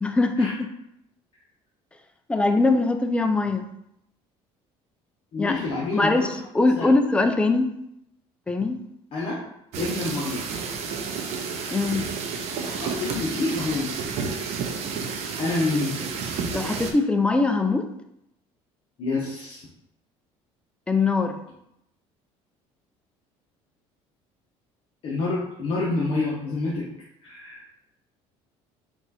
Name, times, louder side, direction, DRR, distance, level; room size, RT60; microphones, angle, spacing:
voice 1, 0.0-0.5 2.3-3.7 5.4-5.6 5.9-6.3 6.5-7.8 8.5-8.8 11.7-12.1 16.5-17.9 20.9-21.4, left 3 dB, 10° left, 6 dB, 0.3 m, -22 dB
voice 2, 5.3-6.3 6.8-6.9 9.1-9.4 9.8-10.4 12.6-13.9 15.4-15.9 19.0-19.6 25.0-26.8 27.2-27.6, left 3 dB, 50° left, -6 dB, 1.0 m, -27 dB
sound 1, 9.7-16.9, right 5 dB, 60° right, 0.7 m, -31 dB
4.6 x 2.5 x 4.1 m, 0.79 s
cardioid pair, 145°, 12 cm